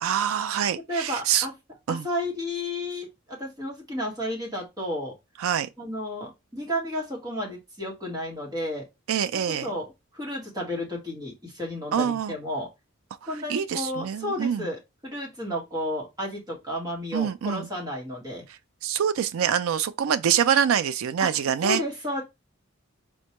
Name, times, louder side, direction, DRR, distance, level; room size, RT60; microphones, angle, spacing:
voice 1, 0.0-1.5 1.9-2.1 5.4-5.7 9.1-9.7 11.9-12.3 13.5-14.7 17.1-17.7 18.8-21.8, right 8 dB, 75° right, 0.4 m, -25 dB
voice 2, 0.9-1.5 1.9-5.1 5.8-8.9 9.3-9.9 10.1-12.7 13.3-18.4 21.2-21.3 21.6-22.2, left 1 dB, 20° right, 1.3 m, -32 dB
4.3 x 2.2 x 2.8 m
head